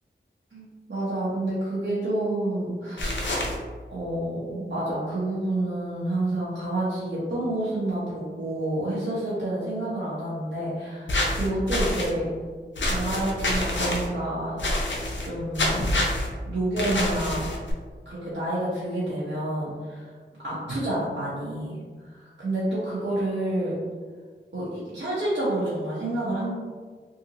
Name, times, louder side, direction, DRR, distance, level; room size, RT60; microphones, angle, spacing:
voice 1, 0.5-3.2 3.9-12.3 12.8-14.6 15.2-15.8 16.5-17.5 18.1-20.1 20.4-23.8 24.5-26.5, right 1 dB, 65° right, -10 dB, 0.9 m, -29 dB
sound 1, 3.0-3.5 11.1-12.1 12.8-14.1 14.6-15.3 15.5-16.3 16.8-17.7, left 1 dB, 70° left, 0.6 m, -26 dB
2.7 x 2.6 x 2.8 m, 1.5 s
wide cardioid pair, 70°, 20 cm